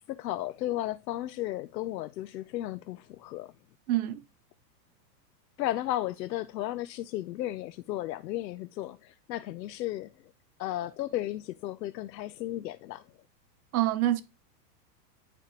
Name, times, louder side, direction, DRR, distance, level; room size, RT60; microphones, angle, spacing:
voice 1, 0.1-3.5 5.6-10.1 10.6-13.0, left 14 dB, 85° left, 0.7 m, -34 dB
voice 2, 3.9-4.2 13.7-14.2, right 14 dB, 60° right, 0.9 m, -26 dB
10.0 x 5.3 x 2.9 m
supercardioid pair, 165°, 50 cm